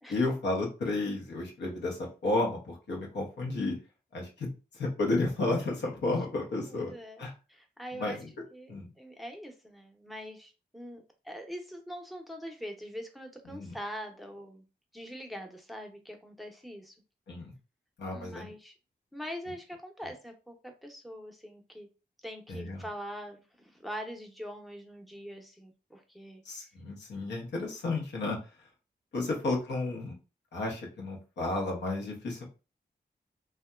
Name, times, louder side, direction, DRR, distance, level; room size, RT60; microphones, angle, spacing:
voice 1, 0.1-3.8 4.1-4.5 4.7-6.9 7.2-7.3 7.9-8.3 8.7-8.9 13.5-13.7 17.3-17.5 18.0-18.5 22.5-22.8 26.4-28.4 29.1-30.1 30.5-32.5, left 2 dB, 85° left, 0 dB, 0.8 m, -32 dB
voice 2, 6.6-7.2 7.5-8.2 8.5-14.6 14.9-16.9 18.1-18.7 19.1-21.9 22.2-26.4 29.2-29.5, equal, ahead, 3 dB, 0.6 m, -43 dB
2.7 x 2.2 x 2.2 m, 0.32 s
cardioid pair, 50°, 18 cm